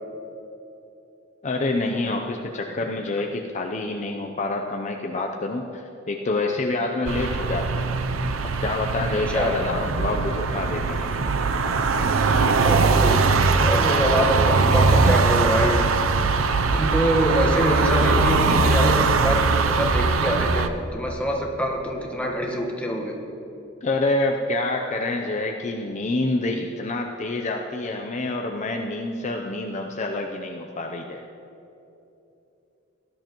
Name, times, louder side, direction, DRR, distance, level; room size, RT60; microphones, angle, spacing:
voice 1, 1.4-7.9 8.6-11.2 23.8-31.2, left 2 dB, 35° left, 2 dB, 0.6 m, -27 dB
sound 1, 7.1-20.7, right 4 dB, 85° right, 0.6 m, -21 dB
voice 2, 12.6-13.2 13.6-15.9 16.7-23.2, equal, 5° left, -1 dB, 1.3 m, -25 dB
18.0 x 11.5 x 3.0 m, 2.9 s
head